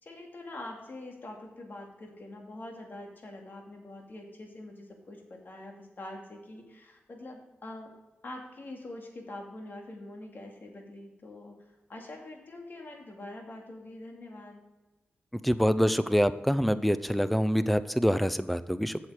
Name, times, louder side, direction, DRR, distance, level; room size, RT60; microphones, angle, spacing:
voice 1, 0.0-7.9 8.2-11.6 11.9-14.6, left 1 dB, 55° left, 1 dB, 2.5 m, -44 dB
voice 2, 15.4-19.0, equal, ahead, 13 dB, 0.6 m, -25 dB
7.9 x 7.7 x 4.9 m, 1.1 s
cardioid pair, 65°, 4 cm